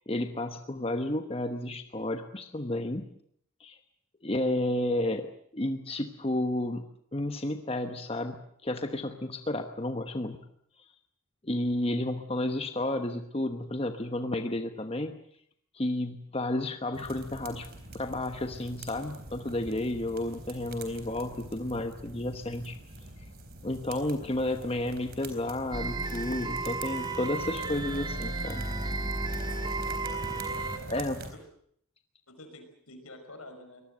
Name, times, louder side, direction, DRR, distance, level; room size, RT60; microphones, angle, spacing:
voice 1, 0.0-3.0 3.6-3.8 4.2-10.5 11.4-15.2 15.7-17.7 17.9-22.8 23.6-28.7 30.9-31.2, left 1 dB, 25° left, 7 dB, 1.1 m, -32 dB
sound 1, 16.9-31.3, right 2 dB, 45° right, 4.0 m, -45 dB
sound 2, 25.7-30.8, right 3 dB, 20° right, 2.4 m, -33 dB
voice 2, 29.6-30.2 30.9-31.0 32.3-33.8, left 2 dB, 80° left, 7 dB, 5.7 m, -49 dB
24.5 x 19.5 x 8.0 m, 0.67 s
head